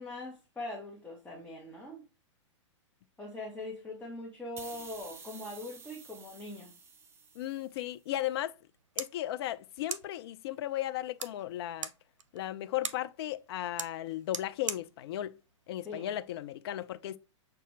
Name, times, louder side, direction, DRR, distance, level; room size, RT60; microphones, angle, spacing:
voice 1, 0.0-2.0 3.2-6.7 15.8-16.1, left 2 dB, 10° left, 1.0 m, -42 dB
sound 1, 4.6-7.9, right 5 dB, 15° right, 0.5 m, -51 dB
voice 2, 7.4-8.5 9.0-11.9 12.3-15.4 15.7-17.2, left 13 dB, 55° left, 0.5 m, -35 dB
sound 2, 8.6-16.6, right 6 dB, 80° right, 0.6 m, -44 dB
6.7 x 2.3 x 3.1 m
hypercardioid pair, 120°, 16 cm